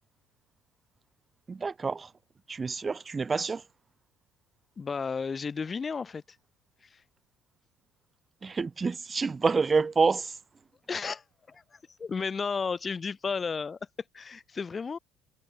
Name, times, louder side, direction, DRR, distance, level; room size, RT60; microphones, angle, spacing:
voice 1, 1.5-2.1 2.5-3.6 8.4-10.4, right 4 dB, 25° right, 2.0 m, -27 dB
voice 2, 4.8-6.2 6.8-7.0 10.9-13.8 14.1-15.0, left 5 dB, 30° left, 2.7 m, -33 dB
supercardioid pair, 100°, 0 cm